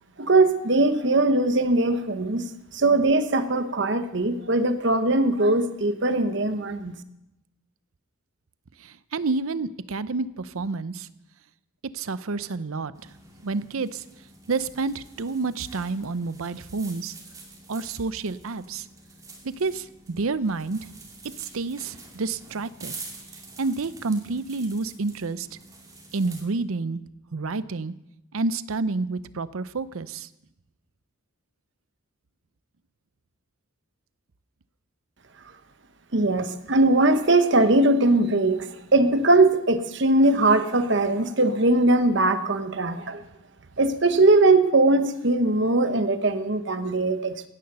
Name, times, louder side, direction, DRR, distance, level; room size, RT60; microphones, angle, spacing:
voice 1, 0.2-7.0 36.1-43.2 43.8-47.3, right 2 dB, 55° right, 9 dB, 1.1 m, -21 dB
voice 2, 8.8-11.1 11.9-12.9 13.4-14.0 14.5-17.1 17.7-18.9 19.4-20.9 21.4-22.9 23.6-25.5 26.1-27.0 27.3-27.9 28.3-30.3, right 3 dB, 80° right, 16 dB, 0.6 m, -29 dB
sound 1, 12.9-26.4, right 3 dB, 15° right, 2.4 m, -46 dB
16.5 x 10.5 x 6.8 m, 0.89 s
head